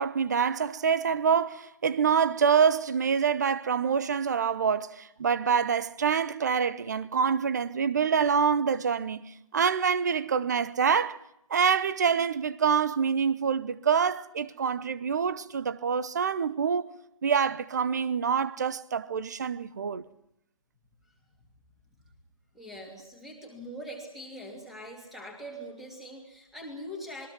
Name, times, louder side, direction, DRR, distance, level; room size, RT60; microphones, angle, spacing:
voice 1, 0.0-9.2 9.5-11.2 11.5-16.9 17.2-20.1, right 6 dB, 30° right, 1.0 m, -26 dB
voice 2, 22.5-27.3, equal, ahead, 3.0 m, -42 dB
26.5 x 22.0 x 6.2 m
figure-of-eight pair, 160°, 18 cm